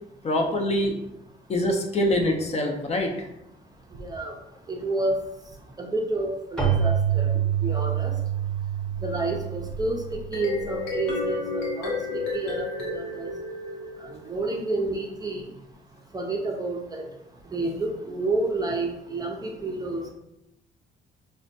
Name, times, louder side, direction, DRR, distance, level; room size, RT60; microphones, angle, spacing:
voice 1, 0.2-0.9 1.5-3.3 12.1-12.2, left 1 dB, 35° left, 2 dB, 0.5 m, -24 dB
voice 2, 4.0-4.3 4.7-5.2 5.8-7.3 7.6-8.1 9.0-11.9 12.3-13.3 14.0-15.4 16.1-17.0 17.5-20.1, right 2 dB, 20° right, 1 dB, 0.5 m, -29 dB
Keyboard (musical), 6.6-11.1, right 9 dB, 5° left, 0.9 m, -27 dB
sleep sfx, 10.1-14.5, left 3 dB, 90° left, 0.8 m, -32 dB
4.2 x 2.2 x 2.6 m, 0.86 s
cardioid pair, 115°, 18 cm